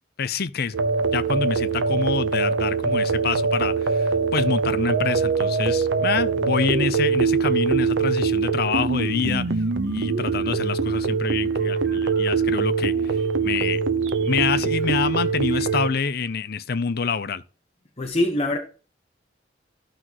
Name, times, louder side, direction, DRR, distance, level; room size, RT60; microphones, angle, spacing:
voice 1, 0.2-9.5 9.8-13.8 14.2-17.4, left 5 dB, 55° left, 0.6 m, -27 dB
sound 1, 0.7-15.9, right 5 dB, 80° right, 0.9 m, -23 dB
voice 2, 18.0-18.6, left 1 dB, 35° left, 1.3 m, -23 dB
13.0 x 5.9 x 3.1 m
head